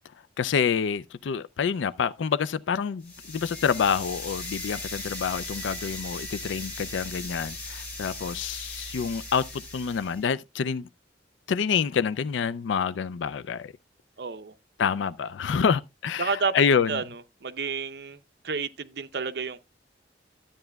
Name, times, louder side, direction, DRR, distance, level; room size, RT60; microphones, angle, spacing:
voice 1, 0.4-10.9 11.5-13.7 14.8-17.0, left 6 dB, 90° left, 0.4 m, -27 dB
sound 1, 3.0-10.2, left 2 dB, 55° left, 4.7 m, -38 dB
voice 2, 14.2-14.5 16.2-16.5 16.9-19.6, right 5 dB, 60° right, 0.6 m, -31 dB
12.5 x 8.8 x 2.3 m
head